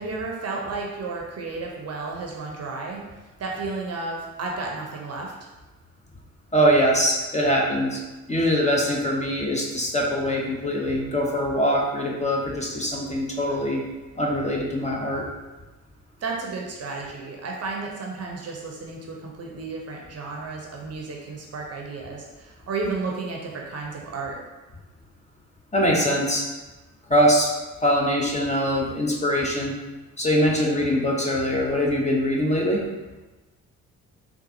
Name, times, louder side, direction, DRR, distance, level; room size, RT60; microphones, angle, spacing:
voice 1, 0.0-3.0 3.4-5.3 16.2-24.4, right 3 dB, 40° right, -1 dB, 0.7 m, -32 dB
voice 2, 6.5-8.0 8.3-13.8 14.2-15.2 25.7-26.5 27.1-27.5 27.8-29.7 30.2-32.8, equal, 15° left, -2 dB, 0.7 m, -22 dB
3.9 x 2.4 x 2.6 m, 1.1 s
figure-of-eight pair, 40°, 40 cm